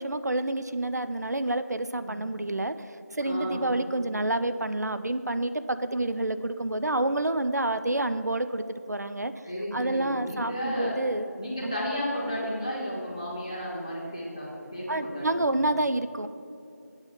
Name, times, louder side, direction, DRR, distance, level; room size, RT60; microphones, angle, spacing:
voice 1, 0.0-2.7 3.1-9.3 9.7-11.3 11.6-11.7 14.9-16.3, right 2 dB, 70° right, 11 dB, 0.5 m, -28 dB
voice 2, 3.2-3.6 9.4-10.9 11.4-15.5, equal, 15° left, -7 dB, 1.4 m, -33 dB
8.0 x 5.6 x 7.1 m, 2.6 s
figure-of-eight pair, 175°, 9 cm